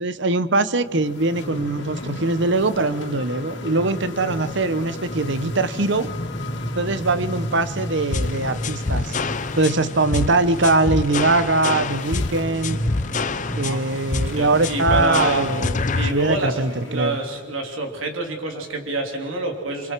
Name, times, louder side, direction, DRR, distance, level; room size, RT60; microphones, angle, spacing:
voice 1, 0.0-6.1 6.8-9.1 9.6-12.8 13.6-15.8 16.1-17.2, right 2 dB, 60° right, 14 dB, 0.9 m, -22 dB
sound 1, 0.8-17.5, left 1 dB, 60° left, 2.6 m, -32 dB
sound 2, 8.1-16.1, left 3 dB, 40° left, 0.7 m, -26 dB
voice 2, 14.3-15.5 15.9-19.9, right 2 dB, 80° right, 3 dB, 3.2 m, -27 dB
30.0 x 25.5 x 4.6 m, 1.4 s
head